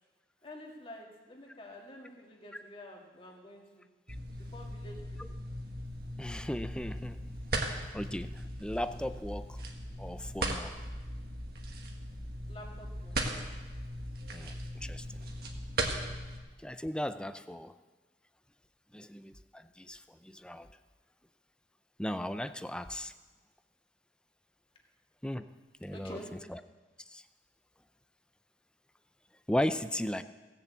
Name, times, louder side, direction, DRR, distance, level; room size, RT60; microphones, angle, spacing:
voice 1, 0.4-3.8 4.4-5.2 12.5-13.2 25.9-26.5, left 1 dB, 30° left, 0 dB, 2.0 m, -48 dB
sound 1, 4.1-16.4, right 1 dB, 55° right, 1.6 m, -38 dB
voice 2, 6.2-7.2 7.9-9.6 10.0-10.7 14.3-15.2 16.6-17.7 18.9-20.7 22.0-23.1 25.2-25.5 25.8-26.2 26.5-26.6 27.1-27.2 29.5-30.2, left 1 dB, 5° left, 11 dB, 0.4 m, -36 dB
17.0 x 7.0 x 8.1 m, 1.2 s
head